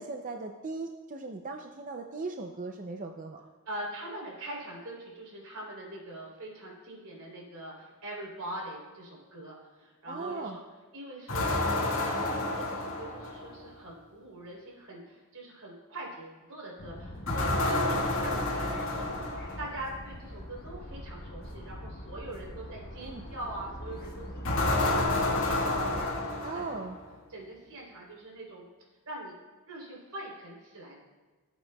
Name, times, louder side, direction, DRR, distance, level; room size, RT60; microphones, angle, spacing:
voice 1, 0.0-3.4 10.0-10.6 18.2-18.4 23.0-23.3 26.4-27.0, right 3 dB, 35° right, 4 dB, 0.5 m, -38 dB
voice 2, 3.6-10.6 10.9-11.7 12.0-24.4 24.8-26.8 27.3-28.6 29.0-29.3 29.7-31.0, right 1 dB, 80° right, -2 dB, 3.4 m, -43 dB
sound 1, 11.3-13.6 17.3-19.8 24.4-27.1, left 2 dB, 60° left, 1.9 m, -29 dB
sound 2, 16.8-26.1, equal, 45° left, 1.2 m, -42 dB
17.0 x 8.1 x 2.3 m, 1.3 s
head